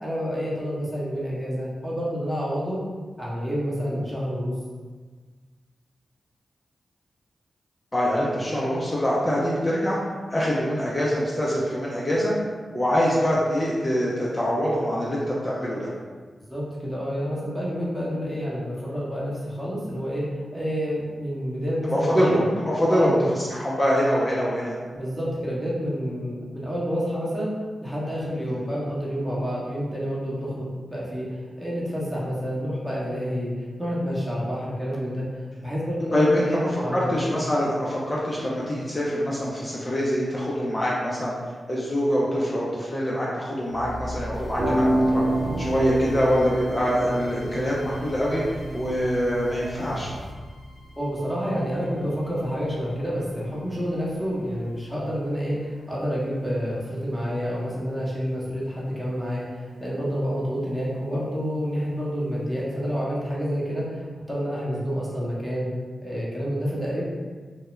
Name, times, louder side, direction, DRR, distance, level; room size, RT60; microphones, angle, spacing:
voice 1, 0.0-2.8 3.2-4.5 16.5-22.5 22.9-23.1 25.0-35.3 35.6-37.3 51.0-65.7 66.0-67.0, equal, 5° right, -7 dB, 0.9 m, -29 dB
voice 2, 7.9-10.0 10.3-12.3 12.7-15.9 21.9-24.8 28.5-28.6 36.1-41.3 41.7-45.2 45.6-48.4 48.7-50.1, equal, 30° left, -6 dB, 0.5 m, -24 dB
sound 1, 43.7-57.7, equal, 85° left, 0.7 m, -42 dB
sound 2, 44.3-50.3, right 1 dB, 55° right, 0.4 m, -28 dB
2.3 x 2.1 x 3.0 m, 1.5 s
cardioid pair, 45°, 0 cm